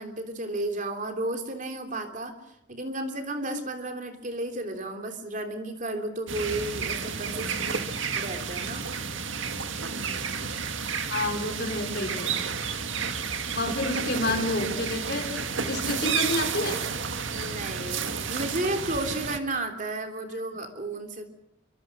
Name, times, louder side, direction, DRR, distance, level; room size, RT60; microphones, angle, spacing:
voice 1, 0.0-2.3 2.7-7.8 8.1-8.9 13.6-13.7 17.3-21.3, right 2 dB, 40° right, 6 dB, 3.2 m, -33 dB
sound 1, 6.3-19.4, right 6 dB, 75° right, 1.9 m, -31 dB
voice 2, 11.1-12.3 13.5-16.8, left 2 dB, 55° left, 4 dB, 5.1 m, -29 dB
27.0 x 25.0 x 6.3 m, 0.77 s
head